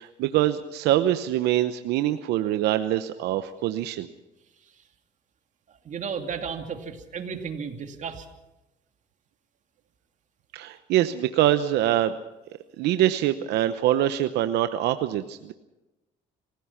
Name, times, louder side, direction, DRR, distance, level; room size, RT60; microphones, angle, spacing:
voice 1, 0.0-4.1 10.5-12.2 12.8-15.5, right 13 dB, 85° right, 10 dB, 0.9 m, -24 dB
voice 2, 5.8-8.3, right 6 dB, 45° right, 5 dB, 2.6 m, -33 dB
27.0 x 16.0 x 5.9 m, 0.99 s
cardioid pair, 110°, 17 cm